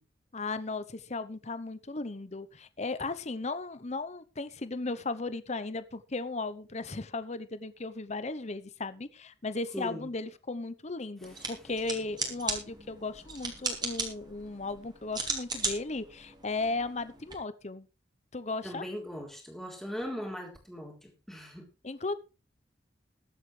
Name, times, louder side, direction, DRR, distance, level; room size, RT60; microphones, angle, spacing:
voice 1, 0.3-17.9 18.3-18.9 21.8-22.1, left 3 dB, 35° left, 0.9 m, -36 dB
voice 2, 9.7-10.1 18.6-21.7, equal, ahead, 3.5 m, -39 dB
sound 1, 11.2-17.3, right 4 dB, 25° right, 3.0 m, -37 dB
21.5 x 8.1 x 3.3 m
head